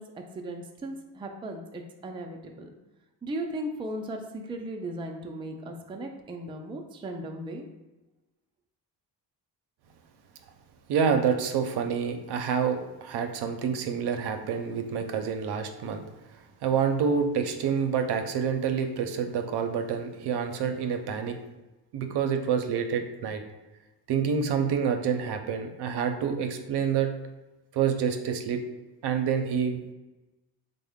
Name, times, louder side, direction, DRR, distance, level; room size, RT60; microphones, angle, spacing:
voice 1, 0.0-2.7 3.2-7.7, right 1 dB, 15° right, 3 dB, 0.3 m, -37 dB
voice 2, 10.9-16.0 16.6-21.4 21.9-23.4 24.1-27.1 27.7-28.6 29.0-29.9, right 7 dB, 75° right, 6 dB, 0.5 m, -27 dB
3.5 x 2.1 x 3.5 m, 1.1 s
cardioid pair, 105°, 40 cm